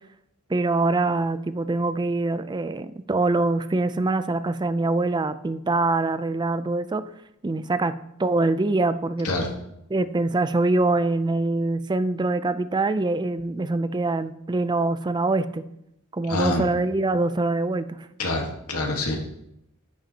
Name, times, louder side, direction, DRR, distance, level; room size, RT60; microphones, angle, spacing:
voice 1, 0.5-7.0 7.4-7.9 8.2-9.3 9.9-15.6 16.1-18.0, right 2 dB, 20° right, 12 dB, 0.4 m, -24 dB
voice 2, 16.3-16.6 18.2-19.2, left 2 dB, 75° left, 0 dB, 1.6 m, -26 dB
10.5 x 9.9 x 2.9 m, 0.80 s
head